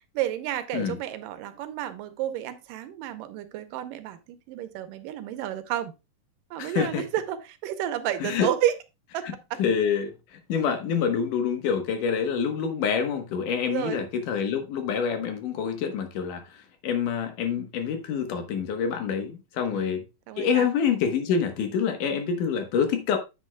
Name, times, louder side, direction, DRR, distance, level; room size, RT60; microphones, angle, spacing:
voice 1, 0.1-5.9 6.5-8.8 9.1-9.6 13.6-14.0 19.7-20.0 20.3-20.7, right 12 dB, 80° right, 2.4 m, -31 dB
voice 2, 6.6-7.0 8.2-8.5 9.6-10.1 10.5-16.4 16.8-20.0 20.4-23.2, left 7 dB, 70° left, 2.7 m, -26 dB
9.7 x 8.1 x 2.3 m
omnidirectional pair, 4.0 m